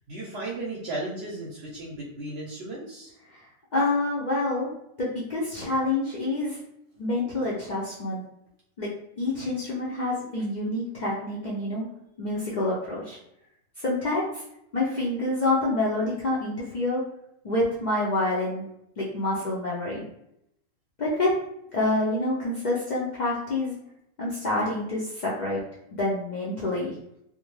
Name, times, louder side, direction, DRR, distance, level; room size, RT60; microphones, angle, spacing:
voice 1, 0.1-3.1, right 2 dB, 60° right, -4 dB, 0.7 m, -35 dB
voice 2, 3.7-4.7 5.0-6.6 7.0-8.2 8.8-8.9 9.2-11.8 12.2-13.2 13.8-14.4 14.7-17.0 17.4-18.7 19.0-20.0 21.0-21.3 21.7-23.8 24.2-25.6 25.9-26.9, left 2 dB, 70° left, -6 dB, 0.4 m, -27 dB
2.4 x 2.1 x 3.0 m, 0.79 s
omnidirectional pair, 1.4 m